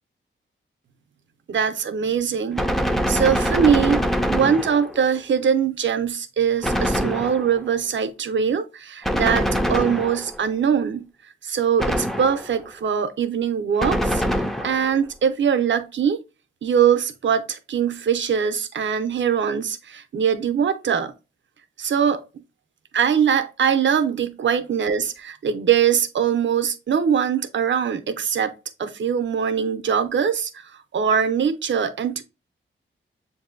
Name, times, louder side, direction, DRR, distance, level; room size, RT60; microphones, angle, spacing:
voice 1, 1.5-2.6 3.1-4.0 4.3-11.1 11.4-14.2 14.6-16.2 16.6-21.1 21.8-22.2 22.9-28.5 28.8-32.2, right 7 dB, 65° right, 0.6 m, -22 dB
Gunshot gunfire, 2.6-5.1 6.6-7.7 9.0-10.5 11.8-12.6 13.8-14.9, equal, ahead, 0.4 m, -24 dB
7.2 x 2.6 x 2.4 m
wide cardioid pair, 120°, 21 cm